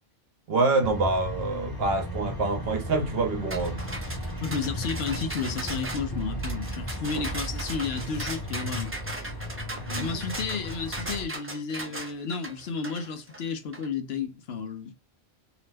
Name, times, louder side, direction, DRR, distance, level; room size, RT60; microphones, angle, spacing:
voice 1, 0.5-3.8 7.1-7.2 9.9-10.2, right 3 dB, 60° right, 1.0 m, -26 dB
sound 1, 0.8-11.3, equal, 20° left, 1.1 m, -35 dB
sound 2, 3.5-13.9, right 2 dB, 20° right, 0.4 m, -38 dB
voice 2, 4.4-8.9 9.9-14.9, left 5 dB, 65° left, 0.9 m, -32 dB
2.9 x 2.1 x 3.2 m
omnidirectional pair, 1.2 m